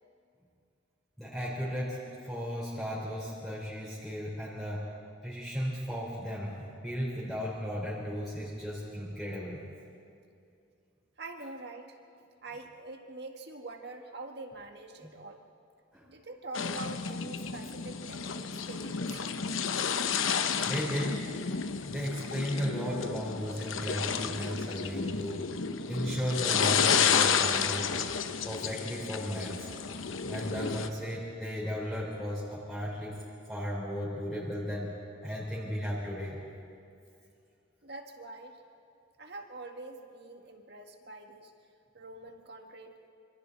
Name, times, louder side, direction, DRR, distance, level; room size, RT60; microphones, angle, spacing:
voice 1, 1.2-2.0 2.2-4.8 5.2-9.6 15.0-15.1 15.9-16.0 20.6-21.2 21.8-25.4 25.9-27.9 28.4-29.7 30.3-33.2 33.5-34.9 35.2-36.4, equal, ahead, -8 dB, 4.1 m, -35 dB
voice 2, 11.2-12.0 12.4-15.4 16.1-19.3 29.9-30.1 30.4-30.5 37.8-38.6 39.2-41.5 41.9-42.9, right 2 dB, 55° right, 4 dB, 1.8 m, -45 dB
sound 1, 16.5-30.9, left 6 dB, 90° left, 0.9 m, -31 dB
27.0 x 26.0 x 4.1 m, 2.5 s
head